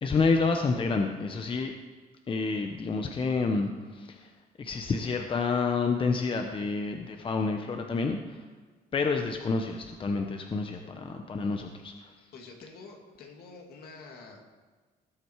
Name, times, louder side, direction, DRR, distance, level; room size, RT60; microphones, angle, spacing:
voice 1, 0.0-1.7 2.3-4.3 4.6-8.4 8.9-12.1, left 4 dB, 30° left, 4 dB, 1.0 m, -29 dB
voice 2, 12.3-14.4, left 4 dB, 65° left, 1 dB, 2.8 m, -47 dB
18.5 x 7.9 x 4.8 m, 1.3 s
cardioid pair, 110°, 17 cm